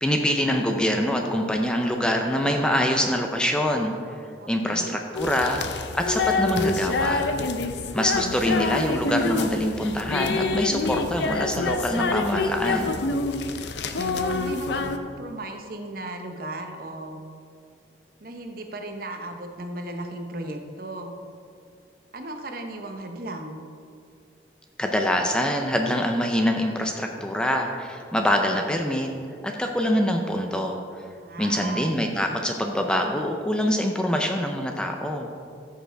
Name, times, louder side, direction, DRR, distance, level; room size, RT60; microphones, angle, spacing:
voice 1, 0.0-3.9 4.5-7.3 7.9-13.0 24.8-29.1 29.4-30.8 31.4-35.3, equal, 5° left, 2 dB, 0.5 m, -25 dB
voice 2, 4.4-5.0 13.9-14.8 15.2-17.2 18.2-21.2 22.1-23.6 31.2-31.9, right 2 dB, 50° right, 4 dB, 0.8 m, -36 dB
sound 1, 5.1-15.0, left 3 dB, 70° left, 0.6 m, -26 dB
13.5 x 6.7 x 3.4 m, 2.3 s
head